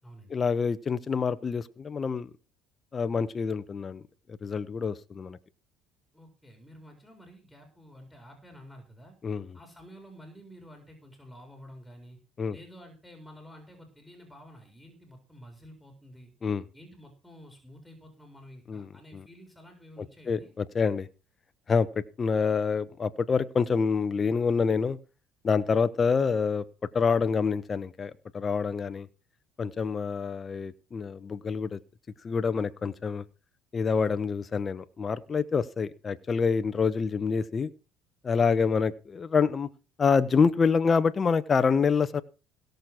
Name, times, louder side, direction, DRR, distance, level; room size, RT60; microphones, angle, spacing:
voice 1, 0.3-2.3 2.9-4.0 4.3-5.4 9.2-9.5 12.4-12.6 16.4-16.6 18.7-18.9 19.1-19.2 20.3-21.1 21.7-25.0 25.4-26.6 26.9-29.1 29.6-31.8 32.2-33.2 33.7-37.7 38.2-39.7 40.0-42.2, left 5 dB, 30° left, 12 dB, 1.0 m, -26 dB
voice 2, 6.1-9.2 9.5-12.2 12.5-16.3 16.7-20.5, equal, ahead, 4 dB, 4.2 m, -50 dB
17.0 x 6.6 x 6.0 m, 0.32 s
supercardioid pair, 95°, 0 cm